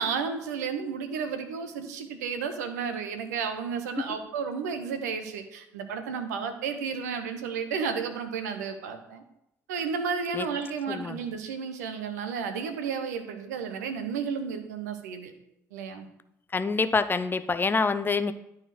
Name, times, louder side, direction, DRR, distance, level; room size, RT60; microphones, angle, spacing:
voice 1, 0.0-9.2 9.7-15.3 15.7-16.1, right 6 dB, 75° right, 7 dB, 0.9 m, -32 dB
voice 2, 10.9-11.2 16.5-18.3, left 4 dB, 25° left, 12 dB, 0.6 m, -26 dB
11.5 x 4.2 x 4.5 m, 0.81 s
figure-of-eight pair, 55°, 9 cm